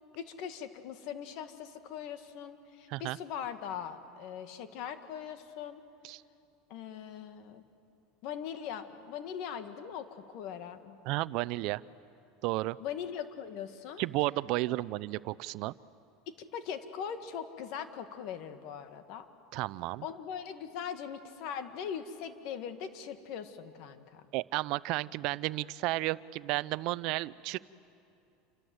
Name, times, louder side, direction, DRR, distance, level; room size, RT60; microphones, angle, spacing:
voice 1, 0.2-5.8 6.7-7.6 8.2-11.0 12.8-14.1 14.7-14.8 16.5-19.3 20.0-24.2, left 8 dB, 60° left, 8 dB, 2.0 m, -41 dB
voice 2, 11.1-11.8 12.4-12.8 14.0-15.7 19.5-20.0 24.3-27.6, right 19 dB, 60° right, 18 dB, 0.5 m, -32 dB
28.5 x 25.5 x 7.9 m, 2.6 s
supercardioid pair, 115°, 0 cm